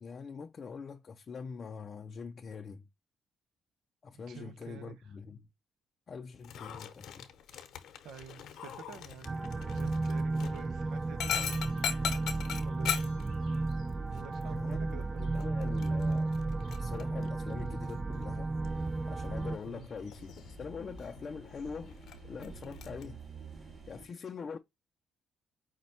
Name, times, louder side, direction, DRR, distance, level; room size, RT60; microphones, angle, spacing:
voice 1, 0.0-2.9 4.0-5.4 6.1-7.3 14.4-18.5 19.0-23.2 23.9-24.6, left 5 dB, 45° left, 0.4 m, -44 dB
voice 2, 4.1-5.1 8.0-11.6 12.6-13.2 14.1-15.0 15.3-15.6 19.7-19.9, right 8 dB, 80° right, 0.5 m, -50 dB
Dog, 6.4-23.0, left 8 dB, 80° left, 0.8 m, -42 dB
sound 1, 9.2-19.6, right 3 dB, 25° right, 0.4 m, -33 dB
sound 2, 18.6-24.0, right 5 dB, 40° right, 2.2 m, -51 dB
5.2 x 2.2 x 4.1 m
cardioid pair, 90°, 0 cm